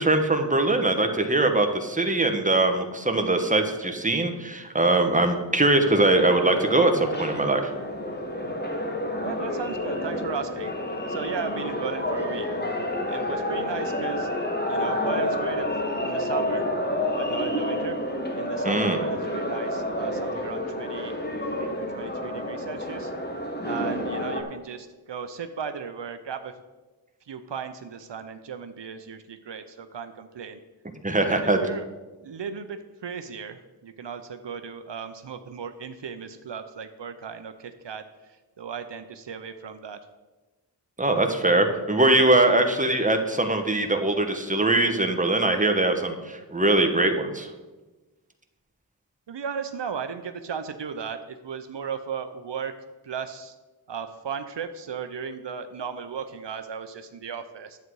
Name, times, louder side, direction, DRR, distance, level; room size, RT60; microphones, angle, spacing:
voice 1, 0.0-7.7 18.6-19.0 31.0-31.6 41.0-47.5, right 2 dB, 20° right, 5 dB, 1.2 m, -22 dB
sound 1, 5.9-24.4, left 1 dB, 25° left, 1.5 m, -29 dB
voice 2, 9.2-10.7 11.1-12.5 13.1-14.3 14.7-15.7 16.0-16.6 17.2-18.0 18.4-21.1 21.4-23.1 23.6-26.5 27.3-30.6 31.2-31.8 32.2-40.0 49.3-51.2 51.4-52.7 53.0-53.5 53.9-57.8, right 6 dB, 75° right, 9 dB, 0.7 m, -36 dB
10.5 x 7.9 x 4.7 m, 1.2 s
wide cardioid pair, 45°, 43 cm